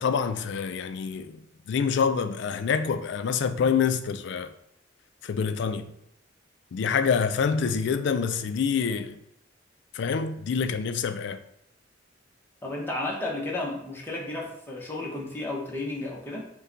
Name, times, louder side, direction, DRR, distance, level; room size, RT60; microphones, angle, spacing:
voice 1, 0.0-1.4 1.7-4.5 5.2-5.9 6.7-9.2 9.9-11.4, left 6 dB, 65° left, 0.3 m, -26 dB
voice 2, 12.6-16.5, left 2 dB, 10° left, 0.9 m, -33 dB
5.4 x 2.2 x 3.8 m
head